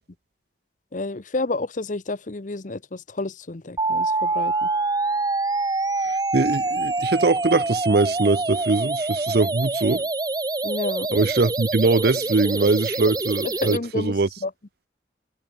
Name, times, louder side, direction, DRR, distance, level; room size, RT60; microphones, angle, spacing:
voice 1, 0.9-4.7 10.6-11.3 13.6-14.1 14.4-14.5, left 2 dB, 45° left, 0.9 m, -30 dB
sound 1, 3.8-13.8, right 3 dB, 20° right, 1.5 m, -25 dB
voice 2, 6.0-10.1 11.1-14.3, right 3 dB, 60° right, 0.7 m, -22 dB
head